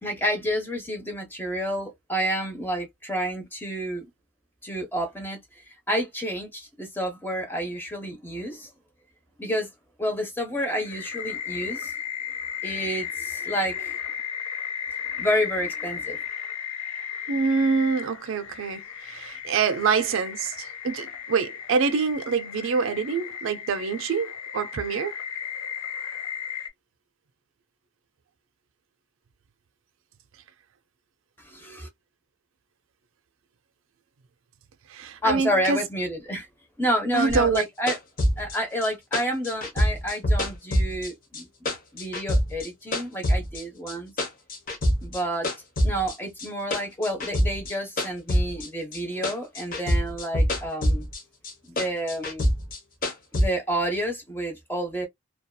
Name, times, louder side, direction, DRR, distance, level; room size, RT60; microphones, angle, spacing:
voice 1, 0.0-4.0 4.6-5.4 5.9-8.7 9.4-9.7 10.0-11.9 12.6-14.0 15.2-16.2 31.4-31.9 35.2-36.5 36.8-38.0 38.4-41.5 41.9-44.1 45.0-45.5 45.8-51.1 51.7-52.5 53.3-55.1, equal, 10° left, 0.7 m, -29 dB
sound 1, 10.8-26.7, left 8 dB, 75° left, 0.5 m, -35 dB
voice 2, 17.3-25.1 34.9-35.8 37.1-37.6, right 5 dB, 65° right, 0.4 m, -25 dB
sound 2, 37.3-41.4 41.7-43.6 43.9-45.2 45.4-49.0 49.2-51.2 51.4-53.5, equal, 40° left, 0.8 m, -25 dB
2.6 x 2.3 x 2.2 m
head